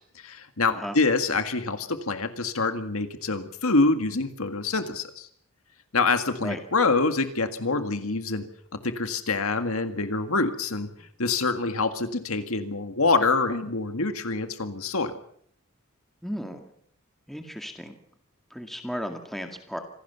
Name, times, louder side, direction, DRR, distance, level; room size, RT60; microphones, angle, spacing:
voice 1, 0.2-5.3 5.9-8.4 8.8-15.2, left 3 dB, 80° left, 8 dB, 1.8 m, -26 dB
voice 2, 16.2-16.6 17.3-18.0 18.5-19.8, equal, ahead, 4 dB, 2.0 m, -35 dB
26.5 x 17.0 x 6.9 m, 0.66 s
head